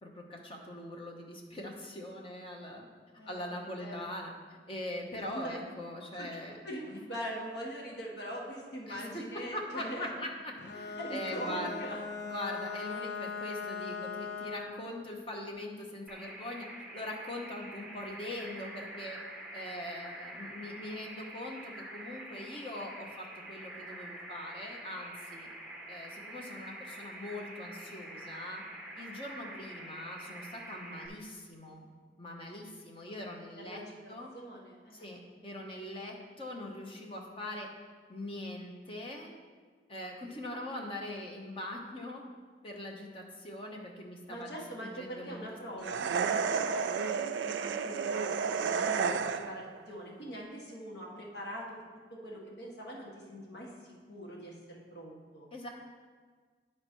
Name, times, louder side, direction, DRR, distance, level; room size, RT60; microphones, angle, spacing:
voice 1, 0.0-2.9 3.3-6.6 6.9-7.1 8.9-11.8 12.3-16.7 16.9-19.2 19.5-25.5 25.9-28.6 29.0-31.9 32.2-33.8 34.1-34.3 34.9-37.7 38.1-39.3 39.9-42.2 42.6-45.4 45.8-46.1 55.5-55.7, left 1 dB, 30° left, 0 dB, 0.9 m, -42 dB
voice 2, 3.2-4.0 5.2-5.6 6.1-6.4 6.6-10.1 11.0-12.0 33.6-35.0 44.3-51.8 52.1-55.5, equal, 75° left, -2 dB, 1.6 m, -43 dB
Bowed string instrument, 10.6-14.9, left 5 dB, 60° left, 0.7 m, -39 dB
sound 1, 16.1-31.1, right 1 dB, ahead, 0.8 m, -46 dB
sound 2, 45.8-49.7, right 6 dB, 90° right, 0.3 m, -31 dB
9.7 x 4.4 x 4.5 m, 1.5 s
head